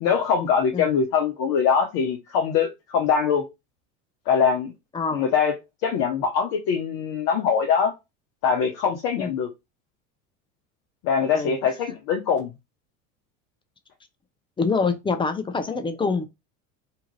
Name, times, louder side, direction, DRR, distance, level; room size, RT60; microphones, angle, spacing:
voice 1, 0.0-3.4 4.3-4.7 5.1-5.5 5.8-7.9 8.4-9.5 11.0-12.5, left 6 dB, 50° left, 0.7 m, -22 dB
voice 2, 4.9-5.3 9.2-9.3 11.3-11.7 14.6-16.3, left 4 dB, 15° left, 0.4 m, -25 dB
2.8 x 2.4 x 3.0 m
hypercardioid pair, 80°, 42 cm